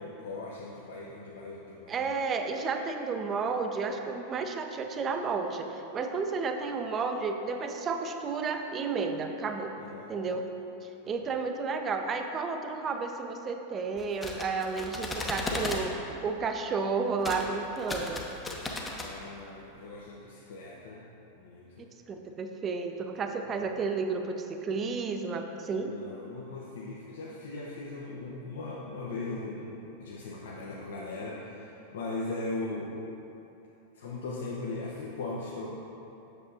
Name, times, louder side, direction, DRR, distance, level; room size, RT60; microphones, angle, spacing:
voice 1, 0.0-2.1 9.8-10.2 19.0-21.0 21.4-21.9 25.7-29.7 30.0-33.0 33.9-35.8, left 2 dB, 60° left, -5 dB, 0.7 m, -39 dB
voice 2, 1.9-9.7 10.1-10.5 10.8-18.3 22.1-25.9, right 4 dB, 25° right, 5 dB, 0.5 m, -32 dB
sound 1, 14.0-15.8 17.2-17.4 17.8-19.1, left 2 dB, 15° left, 0.7 m, -35 dB
8.0 x 6.4 x 2.7 m, 2.9 s
figure-of-eight pair, 90°, 0 cm